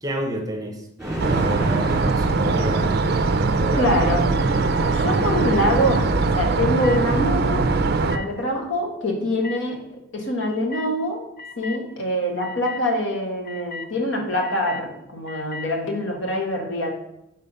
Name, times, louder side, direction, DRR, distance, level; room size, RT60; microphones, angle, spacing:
voice 1, 0.0-3.9, equal, 20° right, 3 dB, 0.8 m, -31 dB
sound 1, 1.0-6.4, right 1 dB, 5° right, 2.2 m, -32 dB
sound 2, 1.2-8.2, right 3 dB, 50° right, 0.4 m, -21 dB
voice 2, 3.8-4.3 4.9-7.6 8.0-9.8 10.1-11.2 11.6-16.9, left 1 dB, 65° left, 1 dB, 1.3 m, -24 dB
sound 3, 4.2-6.0 6.8-7.0 8.1-8.3 9.4-9.6 10.7-10.9 11.4-11.8 12.4-12.8 13.4-13.9 14.4-14.8 15.3-15.7, left 4 dB, 45° left, 0.6 m, -38 dB
5.5 x 4.2 x 5.3 m, 0.83 s
head